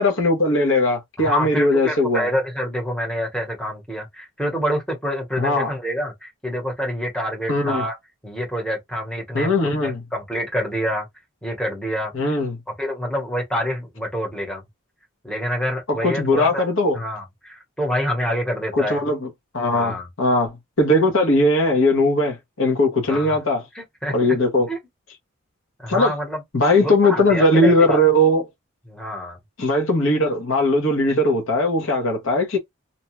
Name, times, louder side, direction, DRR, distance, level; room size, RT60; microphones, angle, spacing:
voice 1, 0.0-2.3 5.4-5.7 7.5-7.8 9.3-10.0 12.1-12.6 15.9-17.0 18.7-23.6 24.1-24.7 25.9-26.1 26.5-28.4 29.6-32.6, left 1 dB, 65° left, 0.9 m, -19 dB
voice 2, 1.2-8.0 8.2-9.5 9.8-11.1 11.4-12.3 12.8-14.6 15.2-16.7 16.9-19.0 19.7-20.1 23.1-23.4 23.7-24.4 24.7-24.8 25.8-26.4 26.8-28.0 28.9-29.4, equal, 5° left, 0.9 m, -27 dB
2.6 x 2.2 x 3.0 m
head